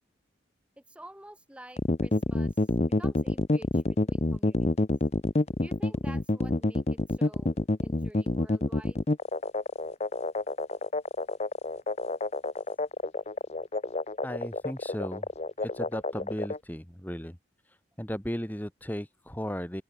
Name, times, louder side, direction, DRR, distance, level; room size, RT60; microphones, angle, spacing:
voice 1, 0.9-4.7 5.6-9.0, right 1 dB, 5° right, 4.0 m, -50 dB
sound 1, 1.8-16.6, left 2 dB, 35° left, 0.7 m, -28 dB
voice 2, 14.2-15.3 15.6-17.4 17.7-19.8, equal, 10° left, 1.8 m, -36 dB
open air
head